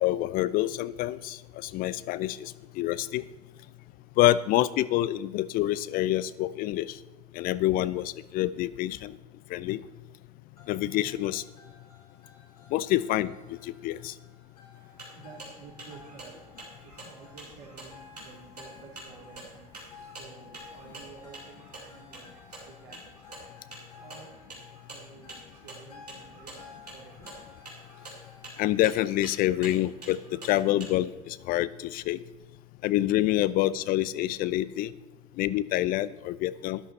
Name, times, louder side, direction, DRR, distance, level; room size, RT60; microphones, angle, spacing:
voice 1, 0.0-3.2 4.2-7.0 7.3-9.2 9.5-9.8 10.7-11.4 12.7-14.1 28.6-32.2 32.8-34.9 35.4-36.8, left 14 dB, 45° left, 17 dB, 0.5 m, -27 dB
sound 1, 10.6-28.5, left 5 dB, 80° left, 3.3 m, -54 dB
sound 2, 14.7-30.9, right 2 dB, 85° right, 3.1 m, -47 dB
voice 2, 15.1-23.4 24.0-24.3 24.9-27.5, right 5 dB, 60° right, -2 dB, 3.5 m, -51 dB
12.5 x 11.0 x 4.2 m, 1.2 s
figure-of-eight pair, 65°, 20 cm